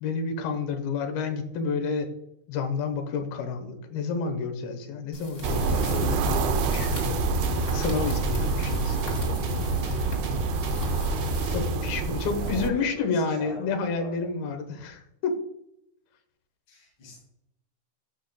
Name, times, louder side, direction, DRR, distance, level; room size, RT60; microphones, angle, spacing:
voice 1, 0.0-2.1 2.5-10.1 11.5-15.4, left 4 dB, 75° left, 5 dB, 2.7 m, -30 dB
sound 1, 5.1-12.3, left 1 dB, 25° left, 1.2 m, -44 dB
sound 2, 5.4-12.1, right 1 dB, 60° right, 1.3 m, -31 dB
sound 3, 5.4-12.7, right 4 dB, 80° right, 2.8 m, -28 dB
voice 2, 12.4-14.3 16.7-17.2, left 3 dB, 45° left, -7 dB, 4.3 m, -40 dB
15.0 x 5.5 x 2.2 m, 0.81 s
omnidirectional pair, 4.8 m